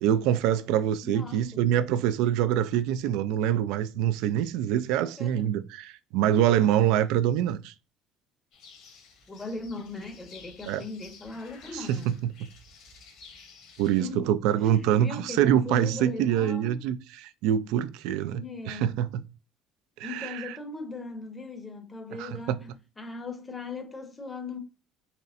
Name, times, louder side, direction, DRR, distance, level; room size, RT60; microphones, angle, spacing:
voice 1, 0.0-7.7 10.7-10.8 11.7-12.5 13.8-19.2 20.0-20.6 22.2-22.6, right 10 dB, 85° right, 0.3 m, -25 dB
voice 2, 1.0-1.6 5.2-5.5 9.3-12.1 14.0-14.3 14.7-16.7 18.3-19.0 20.0-24.6, left 3 dB, 15° left, 0.7 m, -39 dB
sound 1, 8.5-14.1, left 4 dB, 60° left, 1.3 m, -52 dB
4.2 x 3.1 x 2.5 m
cardioid pair, 155°, 0 cm